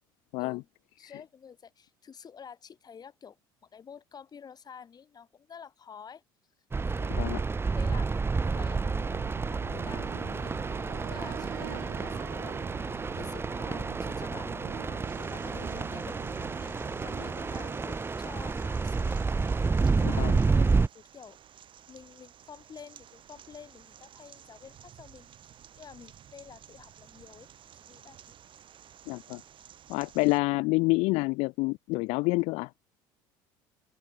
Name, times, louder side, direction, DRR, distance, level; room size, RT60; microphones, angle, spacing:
voice 1, 1.0-6.2 6.8-7.2 7.7-9.2 9.7-10.5 10.9-19.2 19.9-21.4 21.9-28.4, left 7 dB, 35° left, 4.4 m, -49 dB
sound 1, 6.7-20.9, right 4 dB, 20° right, 1.2 m, -30 dB
sound 2, 8.6-18.8, right 21 dB, 85° right, 3.0 m, -46 dB
sound 3, 15.0-30.4, right 10 dB, 50° right, 5.7 m, -54 dB
voice 2, 20.0-20.4 29.1-29.4 29.9-32.7, left 25 dB, 70° left, 0.8 m, -27 dB
open air
hypercardioid pair, 80°, 11 cm